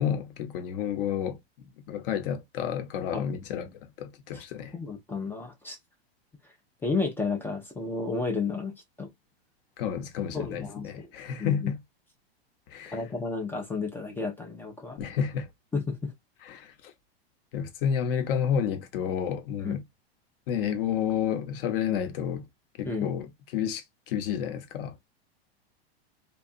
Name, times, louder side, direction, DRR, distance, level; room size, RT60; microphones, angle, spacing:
voice 1, 0.0-1.4 1.9-3.7 4.0-4.7 9.8-11.8 12.7-13.0 15.0-15.5 16.4-16.9 17.5-19.8 20.5-22.4 22.8-23.3 23.5-25.0, left 8 dB, 60° left, 0.7 m, -30 dB
voice 2, 4.7-5.8 6.8-9.1 10.3-11.1 11.4-11.7 12.9-15.0 15.7-16.1 19.6-19.8 22.9-23.1, left 4 dB, 5° left, 0.3 m, -32 dB
2.6 x 2.3 x 2.4 m
hypercardioid pair, 130°, 32 cm